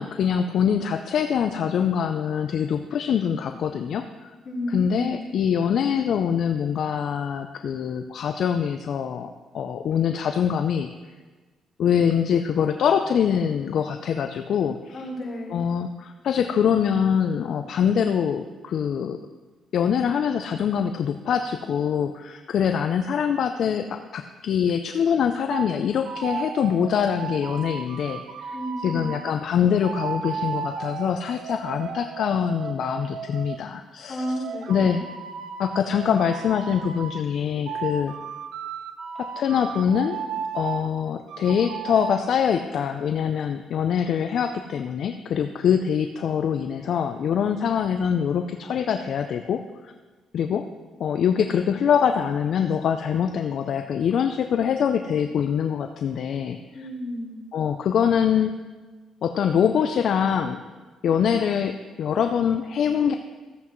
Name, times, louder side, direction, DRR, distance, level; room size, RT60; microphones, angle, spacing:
voice 1, 0.0-4.3 4.7-10.9 11.8-15.0 15.5-19.2 19.7-28.6 28.8-34.2 34.7-35.0 35.6-38.1 39.2-40.2 40.5-49.9 50.3-50.7 51.0-56.6 57.5-58.5 59.2-60.6 61.0-63.1, left 8 dB, 65° left, 7 dB, 0.4 m, -24 dB
voice 2, 4.4-5.2 14.9-15.6 28.5-29.1 34.1-35.0 56.7-57.4, equal, 45° left, -5 dB, 3.7 m, -32 dB
sound 1, 25.5-25.7 26.1-29.4 29.8-33.6 34.2-37.2 37.7-40.9 41.3-42.3, right 6 dB, 75° right, 0.6 m, -34 dB
14.0 x 8.0 x 3.1 m, 1.3 s
cardioid pair, 90°, 0 cm